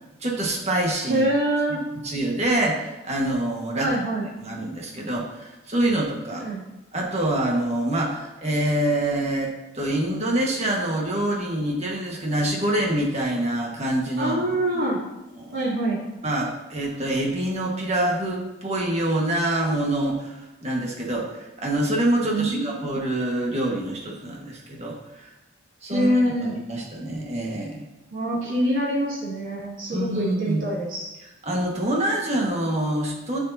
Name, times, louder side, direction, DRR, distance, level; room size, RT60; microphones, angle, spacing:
voice 1, 0.2-1.2 2.0-3.9 4.4-6.4 6.9-14.4 14.7-14.9 15.4-15.6 16.2-25.3 25.8-26.1 26.4-27.8 29.9-30.7 31.4-33.4, right 1 dB, 35° right, -1 dB, 1.6 m, -26 dB
voice 2, 1.1-1.8 3.8-4.2 6.4-6.6 14.2-15.0 15.5-16.0 22.2-22.8 25.9-26.5 28.1-31.1, right 1 dB, 85° right, -9 dB, 3.0 m, -25 dB
12.0 x 6.7 x 2.8 m, 1.0 s
head